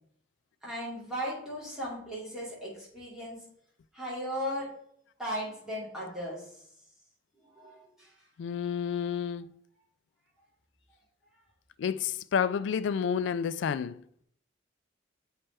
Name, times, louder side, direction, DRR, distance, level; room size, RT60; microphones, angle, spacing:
voice 1, 0.6-3.4 3.9-4.7 5.2-6.6 7.4-8.1, equal, ahead, 2.3 m, -37 dB
voice 2, 8.4-9.5 11.8-14.0, left 7 dB, 75° left, 0.3 m, -30 dB
7.5 x 3.3 x 4.3 m
head